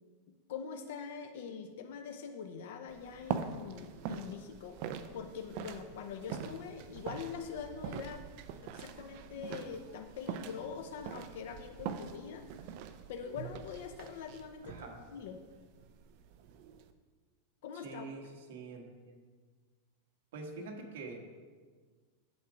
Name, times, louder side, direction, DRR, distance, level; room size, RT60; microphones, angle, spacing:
voice 1, 0.5-4.8 5.1-8.2 8.6-12.4 12.7-12.8 13.1-15.4 17.6-18.1, left 6 dB, 60° left, 5 dB, 0.6 m, -44 dB
sound 1, 2.9-16.9, right 7 dB, 40° right, 0.5 m, -44 dB
voice 2, 14.6-15.0 17.8-18.2 18.5-19.2 20.3-21.2, right 3 dB, 70° right, 1 dB, 1.5 m, -45 dB
7.2 x 7.2 x 5.0 m, 1.5 s
supercardioid pair, 175°, 0 cm